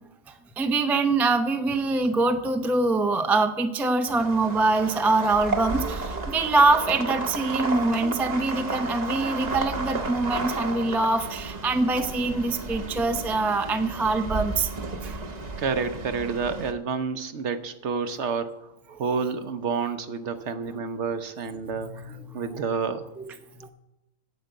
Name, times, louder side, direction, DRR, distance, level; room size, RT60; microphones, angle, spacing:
voice 1, 0.6-14.7 15.0-15.2 21.5-22.7 23.2-23.7, right 3 dB, ahead, 6 dB, 0.4 m, -24 dB
sound 1, 4.1-16.7, right 3 dB, 35° right, 1.0 m, -33 dB
voice 2, 15.6-23.1, right 5 dB, 60° right, 10 dB, 1.0 m, -29 dB
9.6 x 7.8 x 7.9 m, 0.96 s
omnidirectional pair, 1.5 m